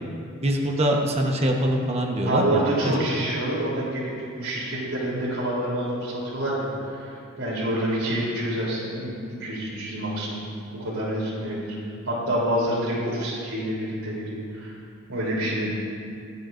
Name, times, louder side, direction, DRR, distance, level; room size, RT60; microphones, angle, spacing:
voice 1, 0.4-3.0, right 1 dB, 30° right, 0 dB, 1.2 m, -24 dB
voice 2, 2.2-4.1 4.4-10.5 10.8-11.8 12.1-14.7 15.1-15.7, right 1 dB, 85° right, -5 dB, 3.6 m, -27 dB
25.0 x 9.4 x 2.7 m, 2.4 s
head